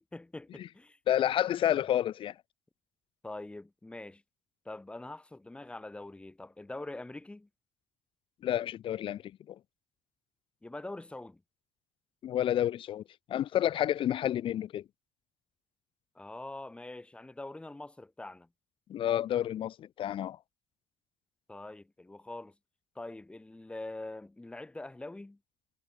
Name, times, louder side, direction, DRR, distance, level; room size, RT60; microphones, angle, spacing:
voice 1, 0.0-1.0 1.7-1.8 3.2-4.2 4.6-7.5 10.6-11.4 16.1-18.5 21.5-22.5 22.9-25.4, left 2 dB, 10° left, 2.8 m, -44 dB
voice 2, 1.1-2.3 8.4-9.2 9.5-9.6 12.2-13.0 13.3-14.8 18.9-20.4, left 11 dB, 55° left, 1.3 m, -29 dB
cardioid pair, 110°, 11 cm